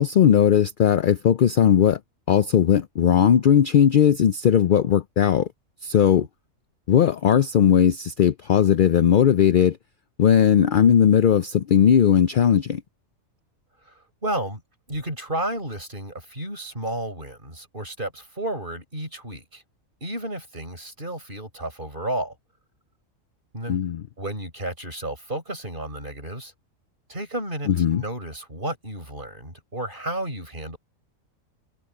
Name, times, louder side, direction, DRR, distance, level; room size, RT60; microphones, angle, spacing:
voice 1, 0.0-2.0 2.3-5.5 5.8-6.3 6.9-9.8 10.2-12.8 23.7-24.0 27.7-28.0, left 9 dB, 65° left, 0.5 m, -18 dB
voice 2, 14.2-14.6 14.9-19.6 20.0-22.3 23.5-23.8 24.2-26.5 27.1-30.8, right 1 dB, 40° right, 7.8 m, -32 dB
omnidirectional pair, 1.4 m